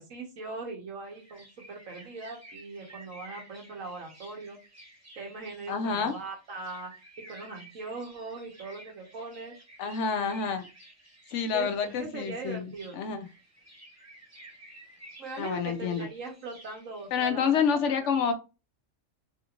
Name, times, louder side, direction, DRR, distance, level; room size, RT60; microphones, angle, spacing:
voice 1, 0.0-4.6 5.2-6.9 7.3-9.5 11.5-13.0 15.2-18.1, right 3 dB, 85° right, 2 dB, 1.4 m, -40 dB
sound 1, 1.0-17.2, right 1 dB, 15° right, 0.9 m, -53 dB
voice 2, 5.7-6.1 9.8-10.7 11.3-13.3 15.4-16.1 17.1-18.3, left 6 dB, 70° left, 8 dB, 0.9 m, -28 dB
3.3 x 2.5 x 2.9 m, 0.29 s
omnidirectional pair, 1.3 m